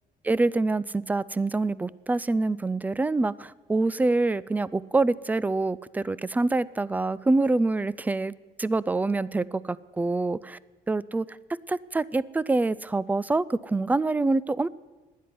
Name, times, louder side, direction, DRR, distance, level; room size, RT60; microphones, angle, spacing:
voice 1, 0.2-8.3 8.6-10.6 10.9-11.3 11.7-14.7, right 3 dB, 10° right, 20 dB, 0.4 m, -26 dB
12.0 x 10.0 x 9.6 m, 1.3 s
cardioid pair, 110°, 17 cm